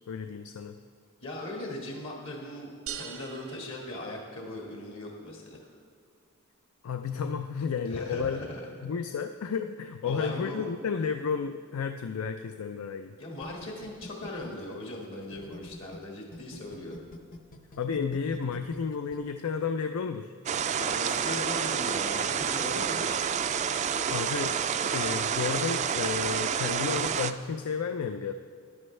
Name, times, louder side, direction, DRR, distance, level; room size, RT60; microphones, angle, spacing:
voice 1, 0.1-0.8 6.8-8.5 8.8-13.1 17.8-20.3 24.1-24.6 24.9-28.3, left 6 dB, 80° left, 7 dB, 0.4 m, -32 dB
voice 2, 1.2-5.7 7.8-8.7 10.0-10.7 13.2-16.9 20.7-23.2, left 1 dB, 65° left, -1 dB, 1.6 m, -39 dB
sound 1, 2.9-4.7, right 8 dB, 75° right, 0.9 m, -43 dB
sound 2, 13.4-16.0 16.3-19.2, left 1 dB, 40° left, 0.7 m, -46 dB
sound 3, 20.5-27.3, right 7 dB, 35° right, 0.3 m, -29 dB
14.0 x 11.0 x 3.2 m, 2.3 s
head